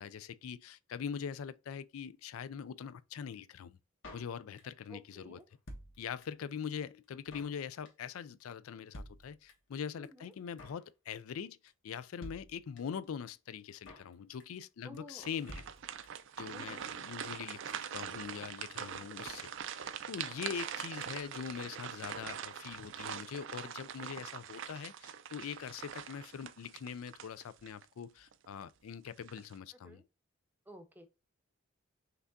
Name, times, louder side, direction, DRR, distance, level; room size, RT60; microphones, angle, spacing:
voice 1, 0.0-3.8 4.1-5.4 6.0-15.7 16.4-30.0, left 7 dB, 80° left, 0.4 m, -43 dB
Drum kit, 4.0-4.9 5.1-5.2 5.4-6.5 6.8-6.9 7.0-7.6 7.8-8.1 8.4-8.5 8.7-8.8 8.9-9.8 10.0-10.1 10.3-10.9 11.1-11.4 11.7-11.8 11.9-12.0 12.2-13.0 13.3-13.4 13.6-14.1 14.4-14.7 14.9-15.0 15.2-15.3 15.5-16.3 16.6-16.7 16.8-16.9, equal, 60° left, 1.3 m, -50 dB
voice 2, 4.9-5.5 10.0-10.3 14.8-15.3 16.5-16.8 29.8-30.0 30.7-31.1, equal, 10° right, 0.6 m, -52 dB
sound 1, 15.2-27.8 28.3-28.5 29.1-29.5, right 8 dB, 60° right, 0.4 m, -43 dB
5.8 x 3.5 x 2.6 m
head